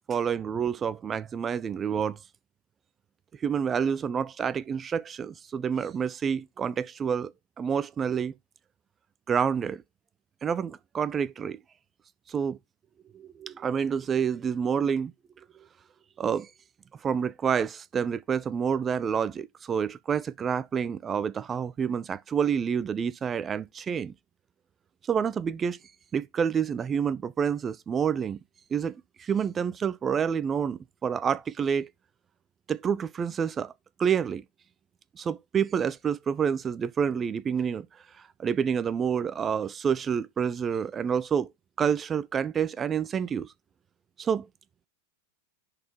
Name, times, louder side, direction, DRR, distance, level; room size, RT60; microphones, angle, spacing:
voice 1, 0.1-2.2 3.4-7.3 7.6-8.3 9.3-9.8 10.4-11.6 12.3-12.6 13.1-15.1 16.2-16.5 17.0-24.1 25.0-25.8 26.1-28.4 28.7-31.9 32.7-33.7 34.0-34.4 35.2-37.9 38.4-41.5 41.8-43.5 44.2-44.5, right 7 dB, 25° right, 0.3 m, -28 dB
10.5 x 4.2 x 2.9 m
figure-of-eight pair, 90°, 0 cm